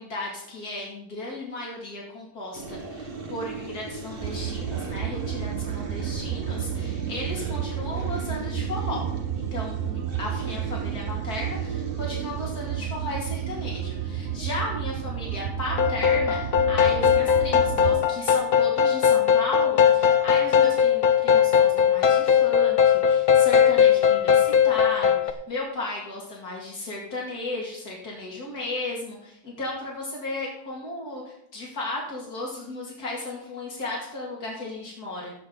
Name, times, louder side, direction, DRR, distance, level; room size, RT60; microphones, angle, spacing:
voice 1, 0.0-9.0 9.4-35.3, left 2 dB, 85° left, -3 dB, 2.8 m, -35 dB
sound 1, 2.5-15.4, right 3 dB, 40° right, 1.5 m, -39 dB
sound 2, 4.2-18.0, right 9 dB, 65° right, 0.6 m, -31 dB
sound 3, 15.8-25.3, left 8 dB, 50° left, 0.7 m, -19 dB
16.0 x 7.7 x 3.9 m, 0.75 s
omnidirectional pair, 1.6 m